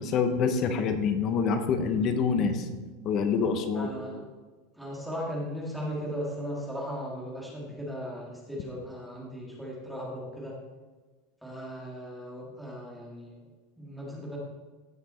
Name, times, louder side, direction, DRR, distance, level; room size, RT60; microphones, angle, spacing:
voice 1, 0.0-2.7 3.0-3.9, left 5 dB, 30° left, 8 dB, 0.9 m, -26 dB
voice 2, 3.7-4.2 4.7-10.6 11.4-13.4 13.8-14.4, equal, ahead, -4 dB, 2.1 m, -37 dB
16.0 x 5.9 x 4.4 m, 1.3 s
supercardioid pair, 180°, 0 cm